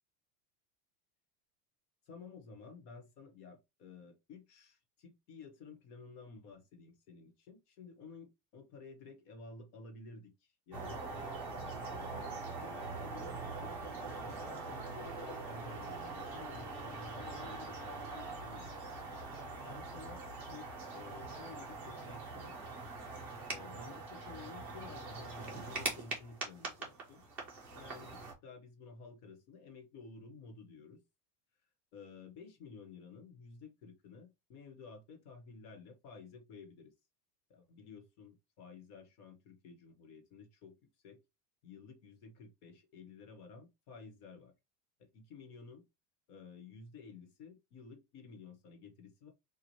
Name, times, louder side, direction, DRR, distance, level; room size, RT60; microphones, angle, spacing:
voice 1, 2.1-12.3 12.6-13.7 14.2-18.9 19.6-22.6 23.5-27.2 27.7-31.0 31.9-36.9 37.5-40.7 41.0-41.2 41.6-44.5 45.0-45.8 46.3-49.3, left 4 dB, 70° left, 1.3 m, -53 dB
sound 1, 10.7-28.3, right 3 dB, 5° right, 0.3 m, -43 dB
3.1 x 2.4 x 4.1 m
supercardioid pair, 175°, 48 cm